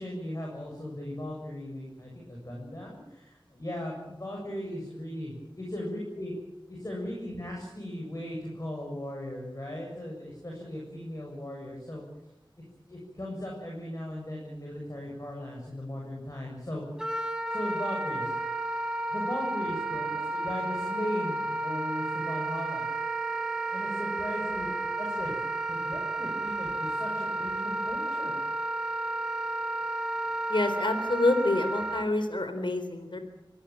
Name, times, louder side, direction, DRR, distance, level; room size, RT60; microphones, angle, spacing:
voice 1, 0.0-6.3 6.7-12.0 12.9-16.8 17.5-18.3 19.1-22.8 23.7-24.7 25.0-25.4 25.7-28.3, left 1 dB, 40° left, -1 dB, 7.4 m, -37 dB
Wind instrument woodwind instrument, 17.0-32.1, right 2 dB, 10° right, 3.5 m, -32 dB
voice 2, 30.5-33.2, left 2 dB, 65° left, 8 dB, 4.0 m, -27 dB
25.0 x 18.0 x 9.0 m, 0.91 s
wide cardioid pair, 55°, 9 cm